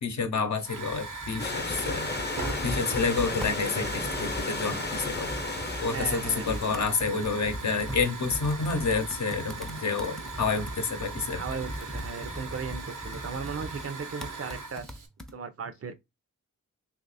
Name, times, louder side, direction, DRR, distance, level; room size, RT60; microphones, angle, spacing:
voice 1, 0.0-2.1 2.6-5.4 5.8-11.4, left 4 dB, 65° left, 0.8 m, -29 dB
Hiss / Fire, 0.6-15.1, right 4 dB, 85° right, 0.9 m, -40 dB
Computer keyboard, 0.9-15.3, equal, ahead, 0.5 m, -39 dB
Stream / Liquid, 1.4-6.7, left 3 dB, 35° left, 0.7 m, -34 dB
voice 2, 5.9-6.5 11.3-14.9 15.3-15.9, right 5 dB, 50° right, 0.6 m, -36 dB
2.9 x 2.4 x 4.0 m
wide cardioid pair, 80°, 30 cm